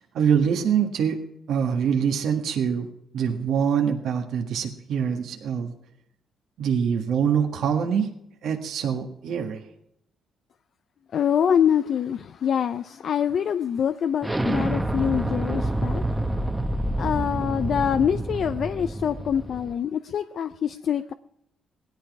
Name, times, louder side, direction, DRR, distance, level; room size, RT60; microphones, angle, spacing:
voice 1, 0.1-1.2 1.5-2.9 3.1-5.7 6.6-8.1 8.4-9.6, right 7 dB, 70° right, 1.6 m, -24 dB
voice 2, 11.1-16.0 17.0-21.1, left 8 dB, 60° left, 0.5 m, -25 dB
Explosion, 14.2-19.7, right 1 dB, 10° right, 1.1 m, -27 dB
17.0 x 11.5 x 4.8 m
cardioid pair, 90°, 0 cm